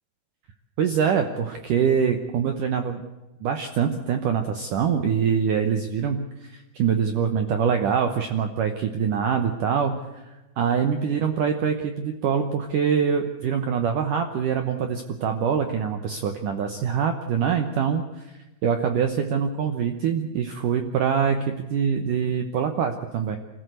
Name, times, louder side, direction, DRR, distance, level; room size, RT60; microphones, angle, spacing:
voice 1, 0.8-3.0 3.4-10.2 10.6-18.3 18.6-23.4, right 7 dB, 75° right, 6 dB, 1.9 m, -24 dB
26.0 x 14.5 x 8.0 m, 1.1 s
omnidirectional pair, 5.2 m